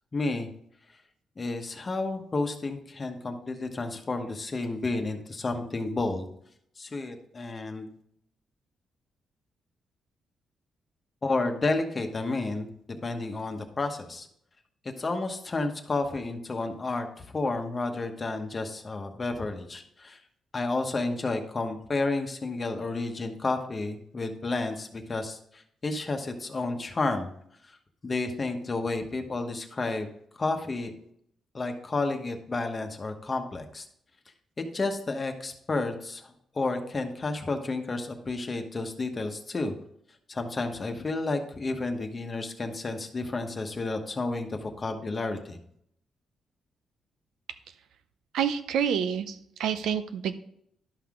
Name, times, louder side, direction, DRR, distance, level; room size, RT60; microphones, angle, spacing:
voice 1, 0.1-0.5 1.4-6.3 6.8-7.9 11.2-12.7 13.0-14.3 15.0-20.2 20.5-27.3 28.0-30.1 30.4-30.9 31.5-33.9 34.6-39.8 40.3-45.6, left 3 dB, 30° left, 5 dB, 1.1 m, -31 dB
voice 2, 48.3-50.4, right 8 dB, 90° right, 11 dB, 0.5 m, -28 dB
11.5 x 5.7 x 3.7 m, 0.71 s
cardioid pair, 105°, 0 cm